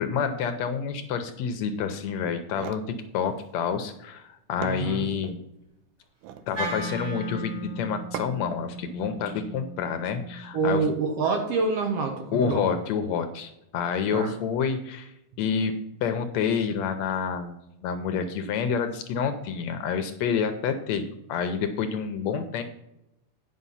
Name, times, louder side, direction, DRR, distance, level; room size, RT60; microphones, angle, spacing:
voice 1, 0.0-2.8 3.1-5.4 6.5-10.8 12.3-15.1 15.4-15.8 16.0-17.6 17.8-22.6, left 6 dB, 70° left, 8 dB, 1.8 m, -28 dB
sound 1, 2.3-2.9 4.2-4.3 4.6-5.4 6.1-6.5 8.1-8.6, right 9 dB, 90° right, 2.2 m, -39 dB
voice 2, 4.6-5.1 10.5-12.6 14.1-14.3, right 4 dB, 60° right, 3 dB, 1.9 m, -26 dB
Wind instrument woodwind instrument, 6.5-10.8, right 1 dB, 40° right, 4.9 m, -36 dB
9.5 x 5.7 x 5.6 m, 0.86 s
omnidirectional pair, 3.6 m